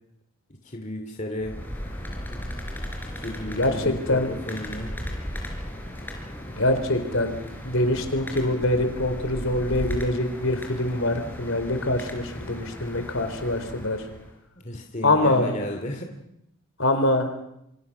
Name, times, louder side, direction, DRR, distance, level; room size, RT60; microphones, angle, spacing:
voice 1, 0.6-1.6 3.0-5.0 14.6-16.1, left 1 dB, 35° left, 3 dB, 2.7 m, -34 dB
sound 1, 1.4-14.3, equal, 10° left, 4.4 m, -36 dB
voice 2, 3.5-4.3 6.6-7.3 7.6-14.0 15.0-15.5 16.8-17.3, left 1 dB, 65° left, 7 dB, 4.0 m, -24 dB
27.5 x 26.0 x 6.1 m, 0.80 s
head